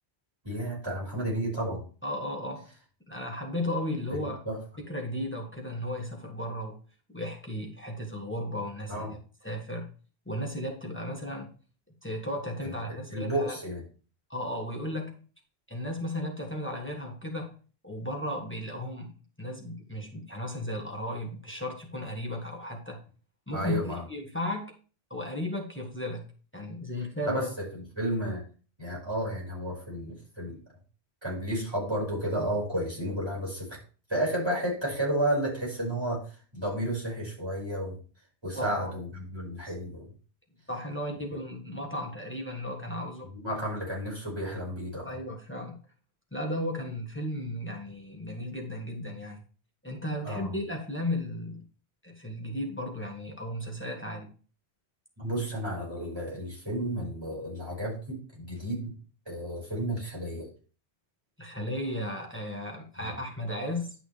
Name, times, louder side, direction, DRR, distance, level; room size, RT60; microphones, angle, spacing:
voice 1, 0.4-1.8 4.1-4.6 8.9-9.1 12.6-13.8 23.5-24.0 27.2-27.5 28.0-28.4 28.8-30.6 31.2-33.8 34.1-38.0 38.4-40.1 43.3-45.2 50.2-50.5 55.2-59.0 59.3-60.5 63.0-63.1, right 1 dB, 25° right, -3 dB, 5.3 m, -32 dB
voice 2, 2.0-2.7 3.1-4.4 4.8-6.8 7.1-9.2 9.4-9.9 10.2-11.5 12.0-13.5 14.3-15.2 15.7-17.6 17.8-19.1 19.4-23.0 23.5-24.7 25.1-26.3 26.5-27.5 38.5-38.9 39.6-39.7 40.7-43.3 45.0-45.8 46.3-49.4 49.8-51.6 52.0-54.3 61.4-63.9, left 1 dB, 10° left, 1 dB, 1.6 m, -35 dB
11.0 x 6.0 x 3.4 m, 0.38 s
omnidirectional pair, 1.1 m